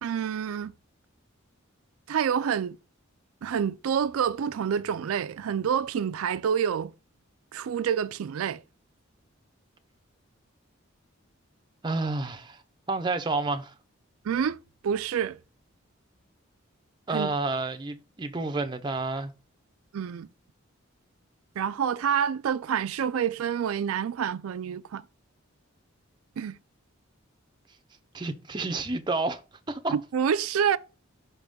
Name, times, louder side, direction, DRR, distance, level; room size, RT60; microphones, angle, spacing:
voice 1, 0.0-0.7 2.1-2.8 3.4-6.9 7.5-8.6 14.2-14.6 14.8-15.4 17.1-17.3 19.9-20.3 21.6-25.0 26.4-26.6 29.9-30.8, right 8 dB, 85° right, 0.4 m, -27 dB
voice 2, 11.8-12.6 12.9-13.7 17.1-19.3 28.1-29.4 29.7-29.9, right 3 dB, 20° right, 0.5 m, -30 dB
5.7 x 3.5 x 5.2 m
head